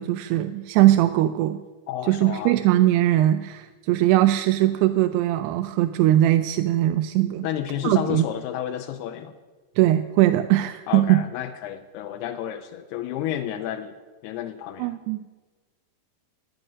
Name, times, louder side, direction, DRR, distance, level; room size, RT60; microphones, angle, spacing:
voice 1, 0.0-1.6 2.0-7.5 7.8-8.3 9.8-11.2 14.8-15.2, right 14 dB, 85° right, 9 dB, 2.6 m, -20 dB
voice 2, 1.9-2.5 7.4-9.3 10.9-13.9 14.2-14.9, left 10 dB, 80° left, 8 dB, 2.5 m, -31 dB
15.0 x 7.8 x 9.8 m, 1.3 s
omnidirectional pair, 4.8 m